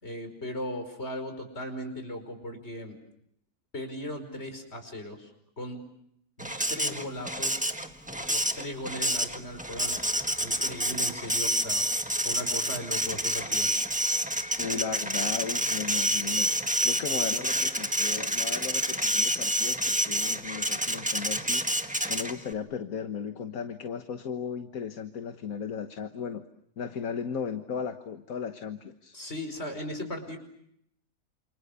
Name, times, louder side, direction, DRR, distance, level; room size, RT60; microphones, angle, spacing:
voice 1, 0.0-3.0 3.7-5.3 5.6-5.8 6.4-7.6 8.1-10.0 10.4-11.8 12.2-13.7 29.1-30.4, left 1 dB, 40° left, 6 dB, 5.5 m, -37 dB
Printer, 6.4-22.5, equal, 5° right, 1.5 m, -28 dB
voice 2, 14.6-21.7 22.1-26.4 26.8-29.2, left 6 dB, 65° left, 8 dB, 1.7 m, -36 dB
29.0 x 29.0 x 6.9 m, 0.74 s
omnidirectional pair, 1.6 m